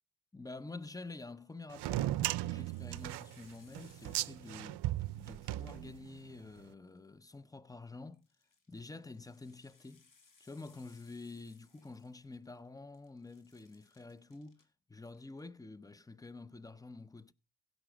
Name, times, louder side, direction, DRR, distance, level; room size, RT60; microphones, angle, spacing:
voice 1, 0.3-8.2 8.7-10.1 10.4-14.6 14.9-17.3, left 3 dB, 10° left, 0.6 m, -49 dB
sound 1, 1.4-1.6 2.1-4.9 5.1-7.0 8.1-12.7 12.9-14.7 15.0-15.5, left 4 dB, 50° left, 2.3 m, -68 dB
sound 2, 1.7-6.3, right 16 dB, 80° right, 0.5 m, -37 dB
16.0 x 6.2 x 5.0 m
cardioid pair, 70°, 39 cm